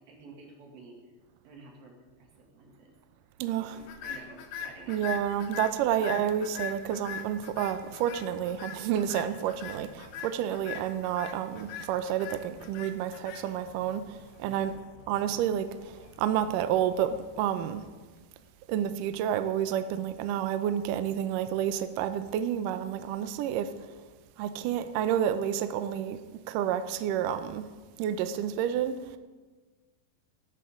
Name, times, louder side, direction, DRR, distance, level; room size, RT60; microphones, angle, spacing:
voice 1, 0.1-1.0 1.4-2.9 3.6-5.2 14.4-14.7, right 3 dB, 65° right, 0 dB, 4.1 m, -51 dB
voice 2, 3.4-3.8 4.9-14.7 15.1-15.7 16.2-17.8 18.7-23.7 24.4-26.2 26.5-27.6 28.0-29.0, right 10 dB, 85° right, 10 dB, 1.9 m, -29 dB
sound 1, 3.8-18.1, left 8 dB, 85° left, 3.1 m, -43 dB
18.0 x 12.0 x 3.7 m, 1.3 s
omnidirectional pair, 4.5 m